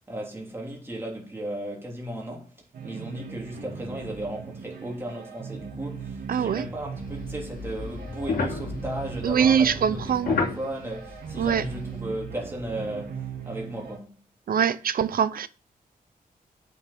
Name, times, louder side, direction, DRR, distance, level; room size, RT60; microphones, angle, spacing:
voice 1, 0.0-2.5 2.8-14.2, right 1 dB, 15° right, 3.3 m, -35 dB
sound 1, 2.7-14.0, right 6 dB, 85° right, 2.3 m, -39 dB
voice 2, 6.3-6.7 9.2-10.3 11.4-11.6 14.5-15.5, right 8 dB, 70° right, 0.7 m, -23 dB
sound 2, 7.0-12.0, left 4 dB, 75° left, 3.0 m, -32 dB
8.3 x 6.7 x 6.4 m
wide cardioid pair, 155°, 15 cm